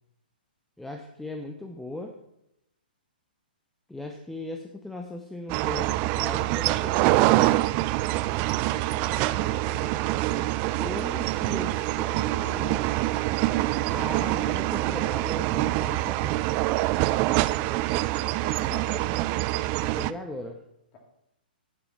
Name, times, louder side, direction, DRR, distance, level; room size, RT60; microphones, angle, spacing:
voice 1, 0.8-2.2 3.9-7.2 10.8-12.8 13.9-16.4 19.7-20.6, left 1 dB, 5° left, 4 dB, 0.7 m, -38 dB
sound 1, 5.5-20.1, right 17 dB, 30° right, 0.3 m, -25 dB
voice 2, 8.7-10.5 18.2-19.2 20.9-21.0, left 2 dB, 30° left, 1 dB, 2.6 m, -43 dB
9.8 x 6.0 x 5.9 m, 0.82 s
hypercardioid pair, 125°, 5 cm